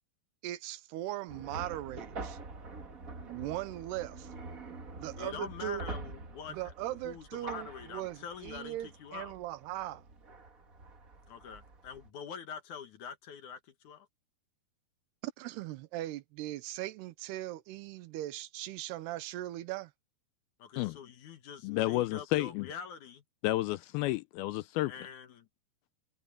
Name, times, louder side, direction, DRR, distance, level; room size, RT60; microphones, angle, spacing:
voice 1, 0.4-2.4 3.3-4.3 5.0-5.8 6.5-10.0 15.2-19.9, right 15 dB, 90° right, 2.9 m, -39 dB
sound 1, 1.3-12.1, right 3 dB, 45° right, 1.1 m, -46 dB
voice 2, 5.2-9.3 11.3-14.1 20.6-23.2 24.9-25.3, left 7 dB, 60° left, 2.5 m, -45 dB
voice 3, 21.6-22.7 23.4-24.9, left 17 dB, 80° left, 2.2 m, -31 dB
omnidirectional pair, 4.6 m